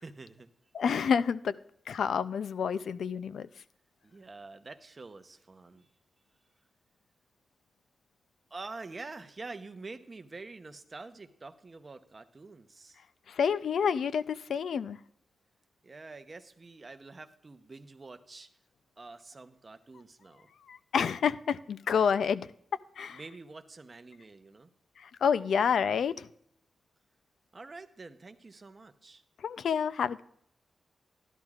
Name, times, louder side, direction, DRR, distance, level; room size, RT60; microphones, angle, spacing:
voice 1, 0.0-0.5 4.0-5.9 8.5-13.0 15.8-18.5 19.0-20.5 23.1-24.7 27.5-29.2, right 3 dB, 30° right, 9 dB, 0.7 m, -47 dB
voice 2, 0.7-1.5 1.9-3.5 13.3-15.0 20.7-22.5 23.0-23.2 25.0-26.3 29.4-30.2, left 7 dB, 90° left, 15 dB, 0.4 m, -28 dB
13.0 x 12.0 x 2.4 m, 0.67 s
wide cardioid pair, 150°, 0 cm